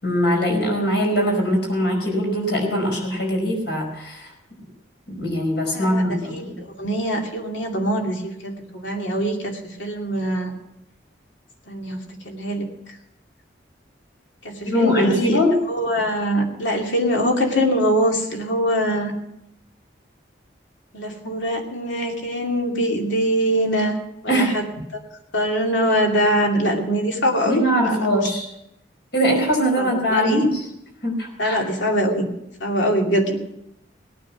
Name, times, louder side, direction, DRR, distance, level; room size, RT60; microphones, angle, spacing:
voice 1, 0.0-4.3 5.1-6.5 14.7-15.5 24.3-24.6 27.4-28.5 29.1-30.7 31.0-31.6, equal, 65° left, 2 dB, 5.0 m, -21 dB
voice 2, 5.7-10.5 11.7-12.7 14.4-15.4 15.7-19.1 20.9-24.0 24.2-24.6 24.9-25.0 25.3-28.1 29.8-30.4 31.4-32.3 32.6-33.4, equal, 85° left, 1 dB, 2.6 m, -23 dB
18.0 x 9.6 x 6.0 m, 0.82 s
head